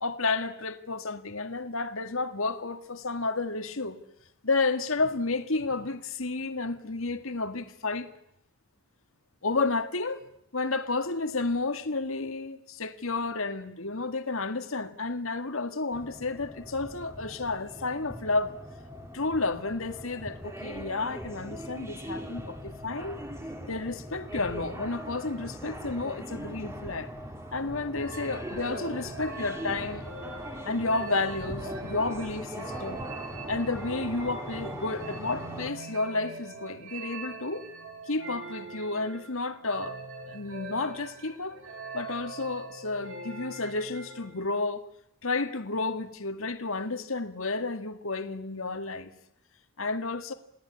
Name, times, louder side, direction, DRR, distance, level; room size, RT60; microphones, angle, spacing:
voice 1, 0.0-4.0 4.4-8.1 9.4-10.2 10.5-18.6 19.1-23.2 23.7-27.1 27.5-30.0 30.6-33.1 33.5-37.7 38.1-40.0 40.3-41.6 41.9-44.9 45.2-49.1 49.8-50.3, left 3 dB, 70° left, 1.9 m, -31 dB
sound 1, 15.9-35.7, equal, 10° right, 2.4 m, -40 dB
sound 2, 28.0-44.4, right 3 dB, 65° right, 6.7 m, -43 dB
28.5 x 17.5 x 9.9 m
head